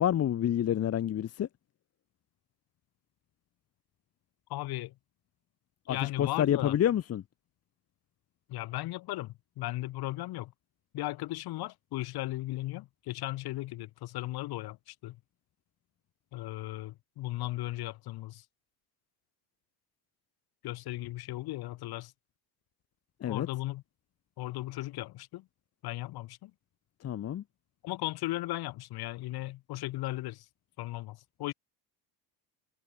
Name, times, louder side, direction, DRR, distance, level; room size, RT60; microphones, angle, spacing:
voice 1, 0.0-1.5 5.9-7.2 23.2-23.5 27.0-27.4, left 10 dB, 35° left, 1.8 m, -28 dB
voice 2, 4.5-4.9 5.9-6.8 8.5-10.5 10.9-15.2 16.3-18.4 20.6-22.1 23.3-23.8 24.4-25.5 25.8-26.5 27.8-30.5 30.8-31.5, left 17 dB, 60° left, 4.2 m, -36 dB
cardioid pair, 165°, 42 cm